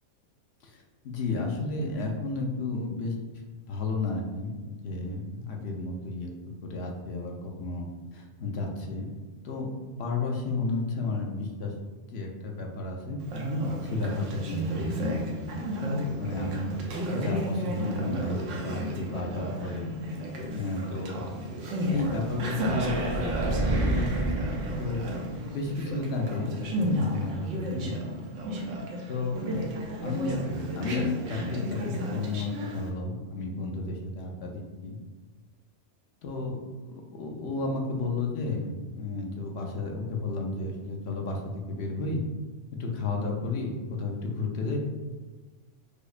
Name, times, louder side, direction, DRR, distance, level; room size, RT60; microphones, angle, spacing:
voice 1, 1.0-3.2 3.7-7.9 8.1-9.1 9.4-9.7 10.0-11.7 12.1-13.2 13.8-15.2 15.5-15.9 16.2-19.9 20.5-21.3 21.9-23.8 24.8-25.1 25.5-28.0 29.1-29.4 30.0-30.5 30.7-35.0 36.2-36.6 36.9-42.2 42.7-44.8, left 3 dB, 65° left, 1 dB, 0.8 m, -32 dB
Conversation, 13.2-32.9, equal, 80° right, 1.0 m, -32 dB
sound 1, 22.4-25.7, right 1 dB, 60° right, 0.5 m, -30 dB
4.8 x 2.0 x 2.4 m, 1.3 s
omnidirectional pair, 1.3 m